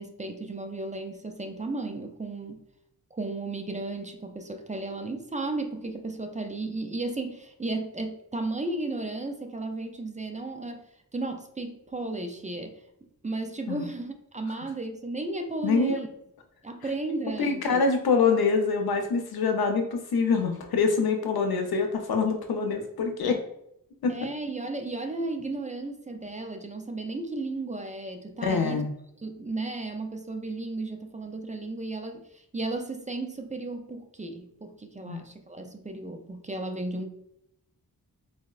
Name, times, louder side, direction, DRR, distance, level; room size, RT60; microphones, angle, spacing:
voice 1, 0.0-2.6 3.1-10.8 11.1-12.8 13.2-16.1 16.6-17.8 24.1-28.9 29.2-37.1, right 2 dB, 20° right, 6 dB, 0.4 m, -34 dB
voice 2, 15.6-16.0 17.4-23.4 24.0-24.1 28.4-28.9 35.0-35.2, left 4 dB, 85° left, 4 dB, 0.6 m, -25 dB
4.4 x 2.0 x 2.3 m, 0.78 s
cardioid pair, 50°, 36 cm